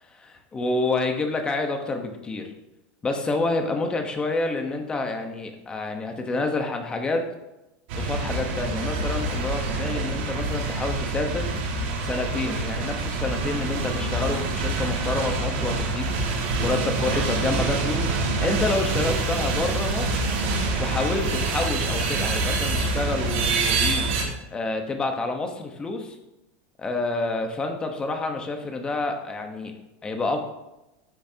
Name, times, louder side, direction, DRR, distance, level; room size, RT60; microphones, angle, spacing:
voice 1, 0.1-2.5 3.0-7.2 7.9-11.5 12.0-16.1 16.6-20.3 20.8-24.1 24.5-26.1 26.8-29.7 30.0-30.4, left 3 dB, 15° left, 5 dB, 1.1 m, -28 dB
sound 1, 7.9-24.2, right 3 dB, 65° right, 2.7 m, -26 dB
12.0 x 8.7 x 2.8 m, 0.95 s
supercardioid pair, 165°, 7 cm